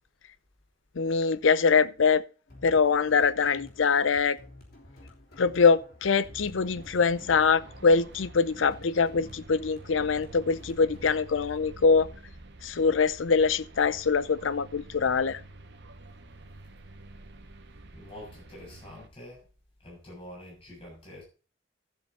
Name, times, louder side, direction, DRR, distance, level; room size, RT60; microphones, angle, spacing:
voice 1, 1.0-2.2 2.6-4.4 5.4-12.1 12.6-15.4, left 5 dB, 75° left, 0.6 m, -23 dB
sound 1, 2.5-11.1, left 1 dB, 50° left, 3.3 m, -51 dB
sound 2, 6.2-19.1, right 2 dB, 60° right, 1.2 m, -49 dB
voice 2, 17.9-19.5 19.8-21.2, left 1 dB, 30° left, 7.5 m, -46 dB
13.0 x 7.8 x 4.2 m
head